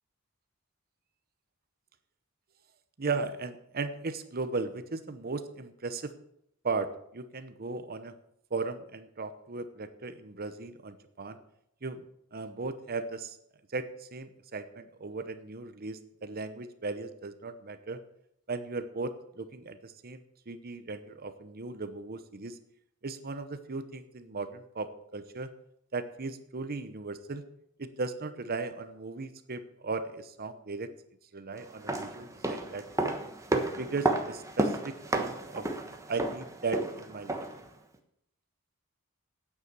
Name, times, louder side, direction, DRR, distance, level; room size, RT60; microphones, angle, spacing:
voice 1, 3.0-6.1 6.6-8.2 8.5-11.4 11.8-12.1 12.3-13.4 13.7-18.0 18.5-22.6 23.0-25.5 25.9-27.4 27.8-30.9 31.3-32.9 33.5-35.7 36.1-37.5, right 3 dB, 45° right, 11 dB, 0.9 m, -37 dB
sound 1, 31.7-37.7 37.9-38.0, right 2 dB, 15° right, 1.2 m, -32 dB
9.5 x 8.4 x 8.1 m, 0.75 s
head